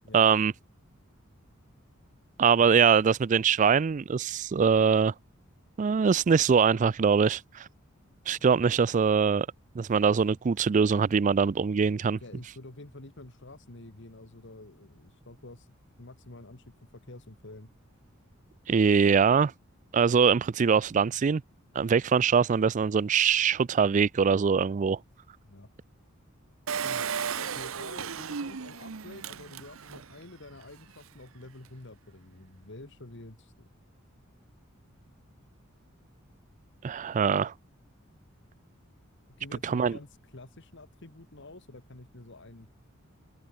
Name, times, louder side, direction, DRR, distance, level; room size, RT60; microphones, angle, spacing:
voice 1, 0.1-0.5 2.4-5.1 5.8-7.7 8.3-9.5 9.8-12.2 18.7-19.5 19.9-21.4 21.8-25.0 36.8-37.5 39.6-40.0, right 6 dB, 35° right, 0.3 m, -23 dB
voice 2, 12.2-15.7 16.0-16.7 17.1-17.7 18.7-19.0 25.5-25.7 26.8-27.1 27.4-33.7 39.4-42.7, left 2 dB, 60° left, 2.0 m, -48 dB
Engine, 26.7-30.1 30.6-30.7 30.9-31.0, right 7 dB, 75° right, 0.8 m, -34 dB
open air
head